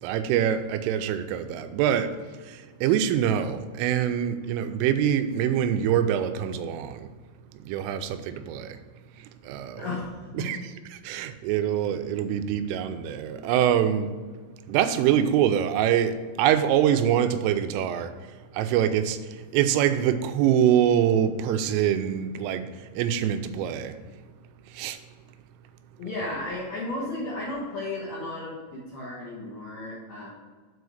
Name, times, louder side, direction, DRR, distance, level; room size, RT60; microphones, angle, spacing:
voice 1, 0.0-2.1 2.4-7.1 7.6-8.8 9.2-9.9 10.3-10.6 10.9-14.1 14.7-18.2 18.5-24.0 24.7-25.0, right 9 dB, 90° right, 3.2 m, -24 dB
voice 2, 9.8-10.5 26.0-30.3, left 2 dB, 60° left, 3.0 m, -34 dB
8.1 x 4.9 x 6.4 m
omnidirectional pair, 5.6 m